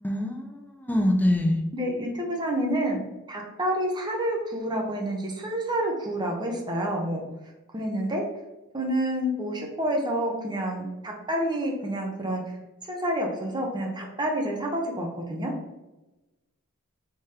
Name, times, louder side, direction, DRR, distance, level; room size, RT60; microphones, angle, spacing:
voice 1, 0.0-1.6, left 1 dB, 10° left, 3 dB, 0.5 m, -24 dB
voice 2, 1.7-3.0 3.3-7.2 7.7-8.2 8.7-12.4 12.9-15.5, right 1 dB, 20° right, 0 dB, 0.9 m, -28 dB
3.7 x 3.4 x 4.2 m, 1.0 s
head